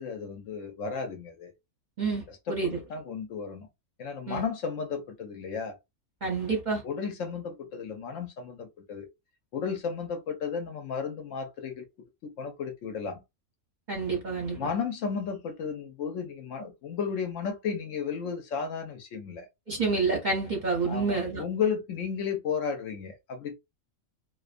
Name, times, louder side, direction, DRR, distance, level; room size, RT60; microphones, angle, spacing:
voice 1, 0.0-1.5 2.5-2.6 2.9-3.7 4.0-5.8 6.8-9.1 9.5-11.8 12.2-13.2 14.6-19.5 20.9-23.6, left 6 dB, 70° left, 0.9 m, -33 dB
voice 2, 2.0-2.8 4.3-4.4 6.2-6.8 13.9-14.7 19.7-21.4, right 4 dB, 45° right, 0.7 m, -28 dB
2.5 x 2.2 x 2.4 m
omnidirectional pair, 1.5 m